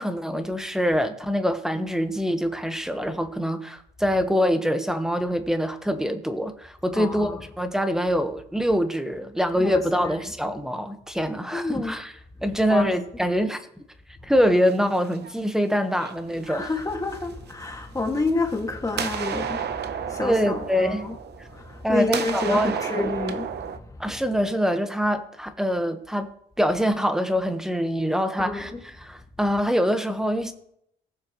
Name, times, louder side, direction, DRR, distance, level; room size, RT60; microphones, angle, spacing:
voice 1, 0.0-12.1 12.4-13.6 14.2-16.7 20.2-21.1 21.8-23.1 24.0-26.3 26.6-28.7 29.0-30.5, equal, ahead, 1.1 m, -24 dB
voice 2, 6.9-7.4 9.5-10.3 11.5-11.9 12.5-12.9 16.5-21.2 21.5-24.2 28.4-28.8, left 3 dB, 15° left, 1.9 m, -29 dB
sound 1, 14.7-15.5 16.0-17.5 18.2-18.6 18.9-21.8 22.1-23.8, right 8 dB, 60° right, 0.8 m, -32 dB
19.0 x 6.6 x 3.0 m
cardioid pair, 90°, 20 cm